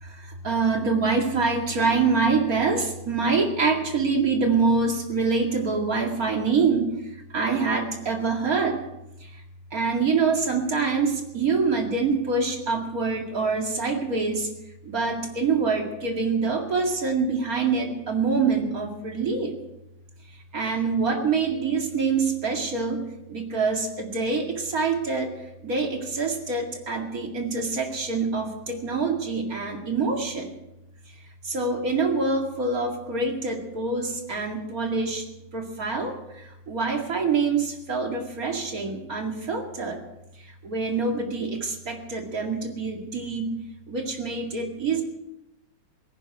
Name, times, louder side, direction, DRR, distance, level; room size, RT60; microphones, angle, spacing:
voice 1, 0.0-6.9 7.3-8.8 9.7-14.5 14.9-19.6 20.5-23.0 23.3-25.3 25.6-30.5 31.4-35.2 35.5-40.0 40.6-43.6 43.9-45.0, right 4 dB, 50° right, 2 dB, 2.6 m, -25 dB
17.5 x 15.5 x 4.7 m, 0.89 s
omnidirectional pair, 2.1 m